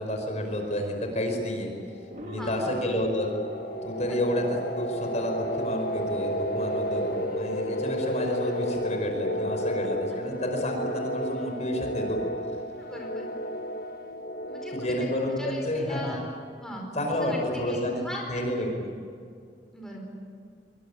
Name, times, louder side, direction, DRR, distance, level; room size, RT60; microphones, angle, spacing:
voice 1, 0.0-1.7 2.2-3.3 3.8-4.4 4.7-12.2 14.7-16.1 17.0-18.7, left 1 dB, 40° left, 3 dB, 5.4 m, -30 dB
sound 1, 2.0-16.5, equal, 55° left, 1.3 m, -33 dB
sound 2, 2.1-12.8, right 5 dB, 50° right, 2.5 m, -43 dB
voice 2, 2.4-2.8 3.9-4.2 12.8-13.3 14.5-16.2 16.6-16.8 17.2-18.7 19.7-20.1, equal, 5° left, -1 dB, 4.5 m, -39 dB
26.0 x 23.0 x 9.0 m, 2.3 s
head